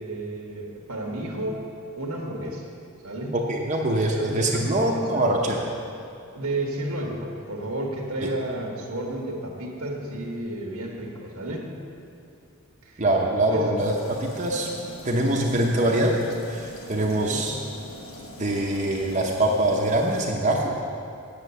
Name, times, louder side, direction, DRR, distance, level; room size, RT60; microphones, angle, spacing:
voice 1, 0.0-1.6 1.9-2.7 3.0-3.4 4.1-5.4 6.3-11.7 12.8-13.0 13.5-13.7 17.0-17.5, right 1 dB, 90° right, -1 dB, 1.4 m, -32 dB
voice 2, 3.3-5.6 8.2-8.3 13.0-14.7 15.0-16.2 16.5-17.6 18.4-20.7, right 1 dB, 35° right, -1 dB, 0.9 m, -23 dB
sound 1, 13.8-20.2, left 1 dB, 65° left, 1.3 m, -42 dB
8.4 x 8.3 x 6.8 m, 2.6 s
head